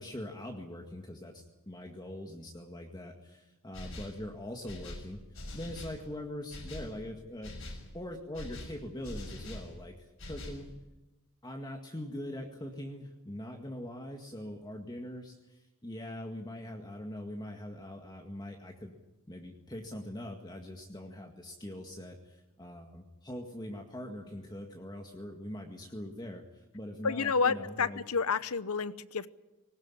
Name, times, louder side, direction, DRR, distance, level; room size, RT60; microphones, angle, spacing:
voice 1, 0.0-10.7 11.4-18.9 19.3-28.0, left 1 dB, 20° left, 2 dB, 1.9 m, -42 dB
sound 1, 3.7-4.2 4.6-6.0 6.5-6.9 7.4-7.9 8.3-9.7 10.2-10.6, left 1 dB, 65° left, 6.3 m, -43 dB
voice 2, 27.0-29.3, left 5 dB, 80° left, 15 dB, 0.9 m, -30 dB
21.0 x 19.0 x 9.9 m, 1.0 s
head